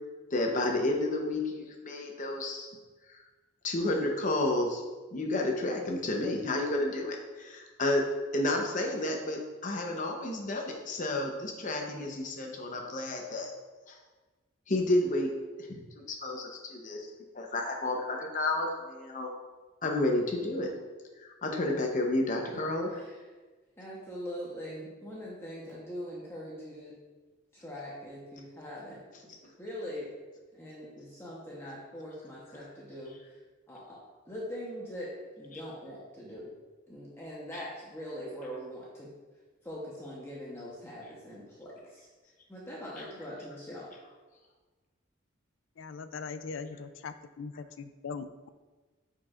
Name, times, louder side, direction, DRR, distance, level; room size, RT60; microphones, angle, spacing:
voice 1, 0.3-2.7 3.6-4.8 5.1-13.5 13.9-14.0 14.7-15.8 16.2-17.1 17.3-19.3 19.8-20.7 21.2-22.9, left 2 dB, 40° left, 2 dB, 0.8 m, -31 dB
voice 2, 22.9-23.2 23.8-27.0 27.5-30.1 30.5-33.4 33.7-36.5 36.9-39.1 39.6-42.1 42.5-43.9, equal, 15° left, -6 dB, 1.0 m, -42 dB
voice 3, 45.8-48.5, left 5 dB, 70° left, 12 dB, 0.4 m, -40 dB
9.3 x 4.6 x 2.5 m, 1.3 s
head